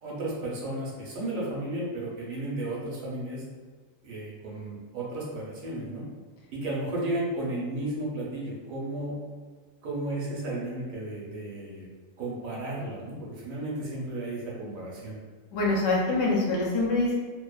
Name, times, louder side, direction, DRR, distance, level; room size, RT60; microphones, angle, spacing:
voice 1, 0.0-3.4 4.0-6.0 6.5-9.2 9.8-11.9 12.2-15.1, right 1 dB, 80° right, -4 dB, 1.1 m, -33 dB
voice 2, 15.5-17.2, left 2 dB, 70° left, -3 dB, 0.9 m, -25 dB
2.8 x 2.0 x 2.3 m, 1.4 s
omnidirectional pair, 1.4 m